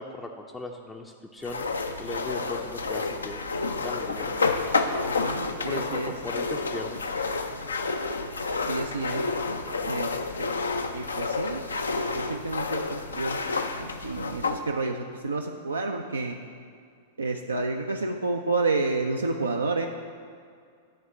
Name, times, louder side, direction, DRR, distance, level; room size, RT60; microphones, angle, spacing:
voice 1, 0.0-1.7 2.0-3.4 3.8-4.3 5.7-7.0, left 2 dB, 10° left, 2 dB, 0.4 m, -37 dB
sound 1, 1.4-14.6, left 3 dB, 80° left, 0.4 m, -30 dB
voice 2, 5.0-6.1 8.7-9.2 9.9-10.6 10.9-11.6 11.9-13.4 13.7-16.4 17.2-19.9, right 3 dB, 80° right, 3 dB, 0.4 m, -30 dB
8.7 x 3.6 x 6.6 m, 2.2 s
figure-of-eight pair, 95°, 0 cm